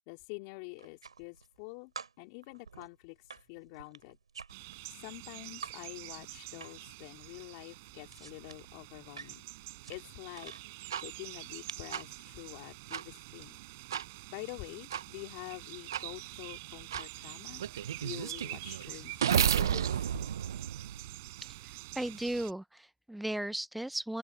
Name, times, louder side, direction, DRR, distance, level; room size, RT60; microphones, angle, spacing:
voice 1, 0.1-1.9 2.2-4.2 4.9-9.5 9.9-10.5 11.0-13.6 14.3-17.6 18.0-20.1, left 30 dB, 20° left, 3.4 m, -47 dB
sound 1, 0.7-1.6 2.0-5.8 6.1-7.0 7.2-10.7 11.3-12.0, right 5 dB, 60° right, 3.7 m, -49 dB
sound 2, 4.5-22.5, right 22 dB, 25° right, 6.5 m, -47 dB
sound 3, 10.9-11.0 11.9-12.0 12.9-13.0 13.9-14.0 14.9-15.0 15.9-16.0 16.9-17.0 17.6-21.5, right 9 dB, 40° right, 0.6 m, -31 dB
voice 2, 21.4-24.2, right 1 dB, ahead, 0.5 m, -36 dB
open air
hypercardioid pair, 155°, 3 cm